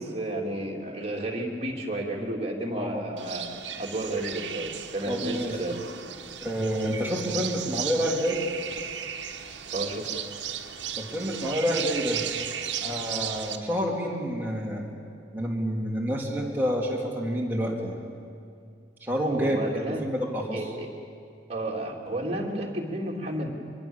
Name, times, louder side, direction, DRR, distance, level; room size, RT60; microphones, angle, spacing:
voice 1, 0.0-5.8 9.7-10.2 19.3-20.0 20.5-20.9 21.5-23.5, right 1 dB, 35° right, -1 dB, 3.1 m, -32 dB
sound 1, 3.2-13.6, right 9 dB, 75° right, 1.4 m, -35 dB
voice 2, 5.1-5.5 6.4-8.4 11.0-12.2 12.8-14.9 15.3-18.0 19.0-19.6 20.0-20.6, equal, 10° right, -3 dB, 3.2 m, -28 dB
24.0 x 23.0 x 7.3 m, 2.3 s
head